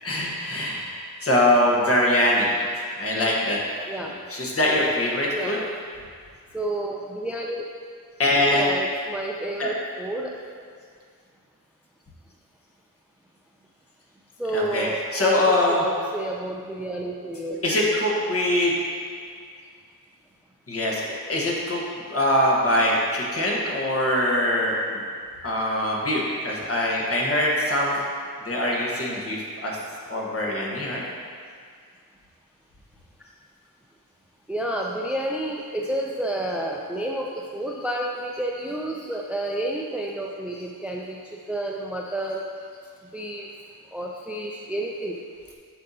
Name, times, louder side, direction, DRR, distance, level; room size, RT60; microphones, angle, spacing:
voice 1, 0.0-2.5 3.0-3.6 4.0-5.6 8.2-8.7 9.6-9.7 14.5-15.8 17.6-18.7 20.7-21.0 21.3-21.8 22.1-25.0 25.4-28.0 28.4-29.8 30.1-31.0, left 1 dB, 40° left, -3 dB, 1.3 m, -23 dB
voice 2, 5.3-5.7 6.5-7.6 8.5-10.3 14.4-17.9 25.4-25.5 34.5-41.2 41.5-42.4 43.1-43.5 43.9-45.2, right 1 dB, 5° right, -1 dB, 0.4 m, -30 dB
8.8 x 6.5 x 2.8 m, 2.1 s
wide cardioid pair, 145°, 35 cm